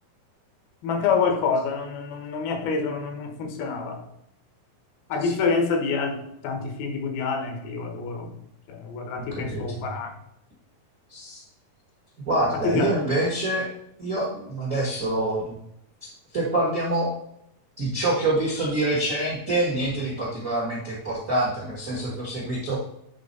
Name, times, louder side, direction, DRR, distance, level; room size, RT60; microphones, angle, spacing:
voice 1, 0.8-4.0 5.1-8.3 8.7-10.1 12.6-12.9, left 5 dB, 85° left, 4 dB, 3.0 m, -27 dB
voice 2, 9.2-9.8 11.1-11.4 12.2-13.7 14.0-15.6 16.3-17.1 17.8-22.8, right 2 dB, 60° right, -4 dB, 0.8 m, -26 dB
9.0 x 4.3 x 4.1 m, 0.77 s
omnidirectional pair, 4.2 m